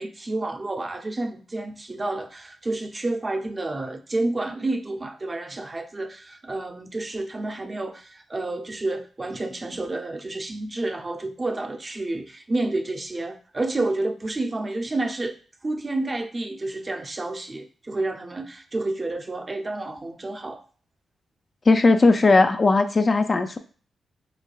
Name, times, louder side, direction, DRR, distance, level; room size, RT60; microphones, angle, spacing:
voice 1, 0.0-15.3 15.6-20.6, right 2 dB, 30° right, 0.5 m, -30 dB
voice 2, 21.7-23.6, left 3 dB, 40° left, 0.4 m, -18 dB
3.3 x 3.2 x 2.3 m
cardioid pair, 65°, 0 cm